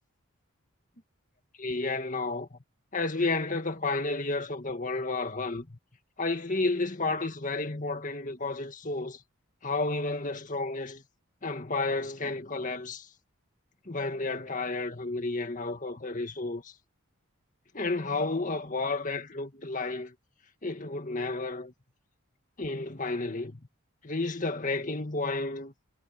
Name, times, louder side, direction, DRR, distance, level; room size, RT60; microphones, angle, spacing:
voice 1, 1.6-2.6 2.9-5.8 6.2-9.2 9.6-11.0 11.4-13.1 13.9-16.7 17.7-20.1 20.6-21.7 22.6-23.6 24.0-25.7, left 3 dB, 35° left, 2.0 m, -31 dB
head